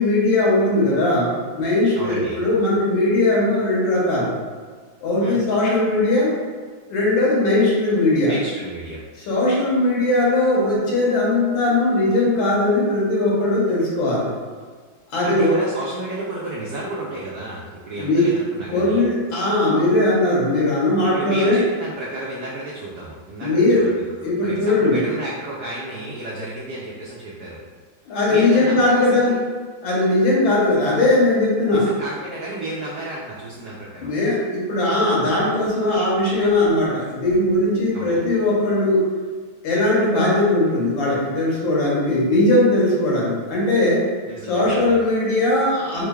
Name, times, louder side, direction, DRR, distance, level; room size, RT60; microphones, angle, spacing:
voice 1, 0.0-4.3 5.0-6.3 6.9-8.3 9.3-14.3 15.1-15.5 18.0-18.3 18.7-21.6 23.4-23.9 24.2-25.0 28.0-29.3 29.8-31.9 34.0-39.1 39.6-44.0 44.4-46.1, left 2 dB, 75° left, -5 dB, 1.7 m, -19 dB
voice 2, 1.9-2.4 5.2-5.4 8.3-9.0 15.2-19.0 21.1-27.6 28.3-29.4 31.7-34.1 37.9-38.3 44.3-45.0, right 2 dB, 80° right, -5 dB, 0.8 m, -32 dB
3.8 x 3.2 x 2.2 m, 1.5 s
omnidirectional pair, 2.2 m